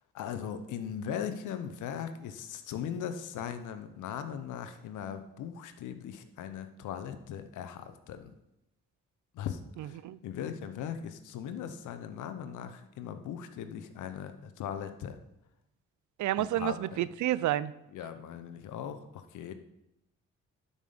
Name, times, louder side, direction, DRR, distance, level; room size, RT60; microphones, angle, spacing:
voice 1, 0.1-8.3 9.3-15.2 16.4-17.0 17.9-19.5, left 8 dB, 85° left, 0.9 m, -39 dB
voice 2, 16.2-17.7, right 14 dB, 75° right, 0.5 m, -29 dB
11.5 x 5.7 x 5.1 m
supercardioid pair, 60°, 30 cm